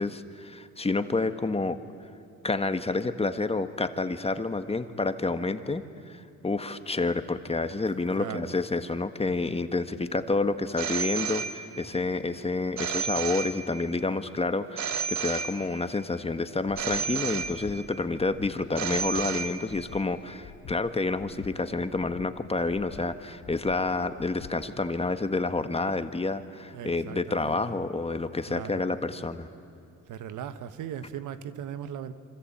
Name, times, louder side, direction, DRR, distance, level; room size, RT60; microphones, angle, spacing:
voice 1, 0.0-1.8 2.4-29.5, left 3 dB, 20° left, 10 dB, 1.5 m, -29 dB
voice 2, 7.9-8.5 26.7-27.8 28.4-28.9 30.1-32.1, right 9 dB, 80° right, 11 dB, 1.4 m, -39 dB
Telephone, 10.8-12.0 12.8-14.0 14.8-16.0 16.8-18.0 18.8-20.0, right 7 dB, 65° right, 1.7 m, -32 dB
Breathing, 16.6-17.0 17.4-17.8 18.1-18.5 18.9-19.3 19.7-20.0 20.4-20.8 21.2-21.5 21.9-22.3 22.7-23.0 23.4-23.8 24.2-24.5, left 9 dB, 70° left, 1.6 m, -46 dB
27.0 x 25.0 x 8.8 m, 2.7 s
cardioid pair, 90°, 30 cm